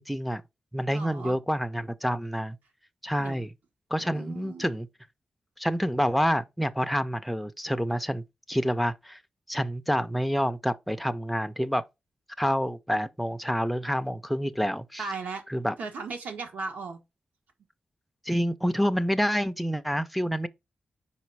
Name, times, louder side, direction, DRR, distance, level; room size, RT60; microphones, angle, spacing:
voice 1, 0.1-0.4 0.7-2.6 3.0-3.5 3.9-4.9 5.6-9.2 9.5-11.8 12.4-15.0 15.5-15.7 18.3-20.5, equal, ahead, 0.3 m, -28 dB
voice 2, 0.9-1.4 3.2-3.4 4.1-4.7 15.0-15.4 15.8-17.0, right 4 dB, 80° right, 1.3 m, -36 dB
5.1 x 4.1 x 4.6 m
wide cardioid pair, 180°, 3 cm